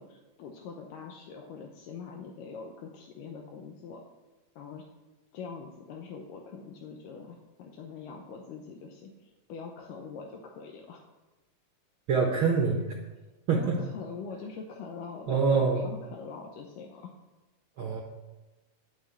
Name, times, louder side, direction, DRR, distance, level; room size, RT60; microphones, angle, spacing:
voice 1, 0.0-4.0 4.6-4.8 5.3-11.0 13.5-15.4 15.7-17.1, left 5 dB, 80° left, 1 dB, 2.4 m, -43 dB
voice 2, 12.1-12.8 13.5-13.8 15.3-15.8 17.8-18.0, right 5 dB, 80° right, 0 dB, 1.1 m, -25 dB
9.6 x 6.3 x 8.1 m, 1.1 s
omnidirectional pair, 3.9 m